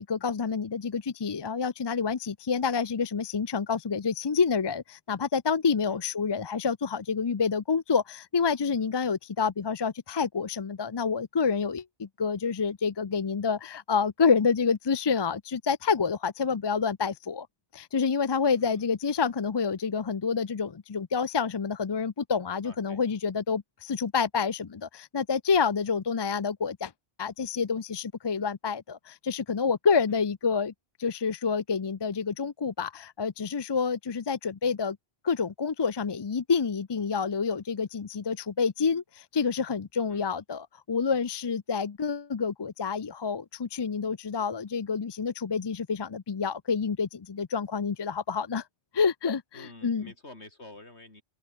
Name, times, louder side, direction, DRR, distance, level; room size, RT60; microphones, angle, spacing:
voice 1, 0.0-17.5 17.7-26.9 27.2-30.7 31.0-35.0 35.2-48.6 48.9-50.1, left 5 dB, 35° left, 0.4 m, -28 dB
voice 2, 18.4-18.9 22.6-23.0 30.1-30.2 40.1-40.2 49.5-51.2, left 2 dB, 75° left, 5.5 m, -49 dB
open air
omnidirectional pair, 1.1 m